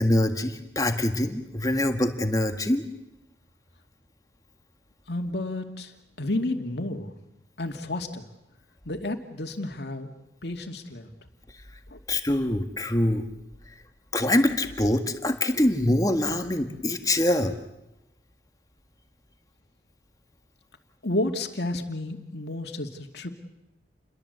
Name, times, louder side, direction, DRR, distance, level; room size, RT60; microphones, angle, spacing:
voice 1, 0.0-2.8 12.1-13.3 14.1-17.6, left 1 dB, 20° left, 6 dB, 1.7 m, -24 dB
voice 2, 5.1-7.1 7.6-8.2 8.9-10.1 10.4-11.1 11.9-12.0 21.0-23.3, left 1 dB, 70° left, 5 dB, 2.4 m, -31 dB
29.5 x 22.5 x 8.1 m, 0.92 s
head